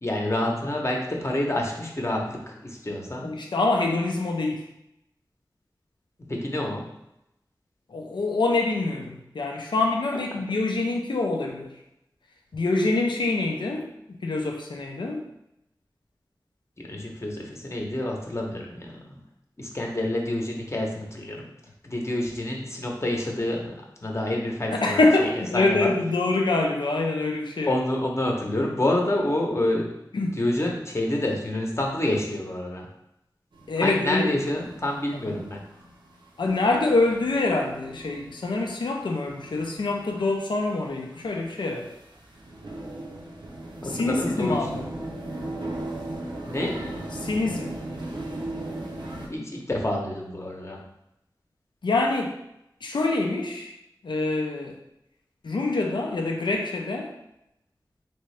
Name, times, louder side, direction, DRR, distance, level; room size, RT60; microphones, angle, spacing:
voice 1, 0.0-3.3 6.3-6.8 16.8-19.2 19.6-21.5 21.8-23.7 24.0-25.9 27.7-29.9 30.4-32.9 33.8-35.6 43.8-44.7 46.5-46.8 49.3-50.8, left 1 dB, 35° left, 0 dB, 0.8 m, -28 dB
voice 2, 3.2-4.6 7.9-11.8 12.5-13.9 14.2-15.2 24.7-27.8 30.1-30.4 33.7-34.4 35.3-35.4 36.4-41.9 43.8-44.9 47.1-47.7 51.8-52.4 52.8-53.7 54.0-54.8 55.4-57.1, left 2 dB, 85° left, 1 dB, 0.4 m, -25 dB
sound 1, 33.5-49.3, right 1 dB, 85° right, 0.6 m, -38 dB
3.3 x 2.7 x 3.2 m, 0.84 s
wide cardioid pair, 50°, 8 cm